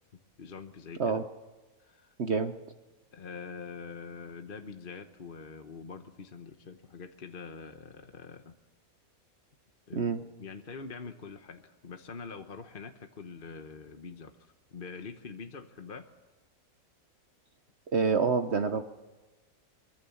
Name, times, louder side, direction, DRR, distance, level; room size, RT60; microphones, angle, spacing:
voice 1, 0.4-1.2 1.8-2.1 3.1-8.6 9.9-16.1, left 5 dB, 40° left, 6 dB, 1.1 m, -44 dB
voice 2, 2.2-2.5 9.9-10.2 17.9-18.8, right 5 dB, 50° right, 9 dB, 1.1 m, -27 dB
24.0 x 23.0 x 7.1 m, 1.2 s
omnidirectional pair, 1.6 m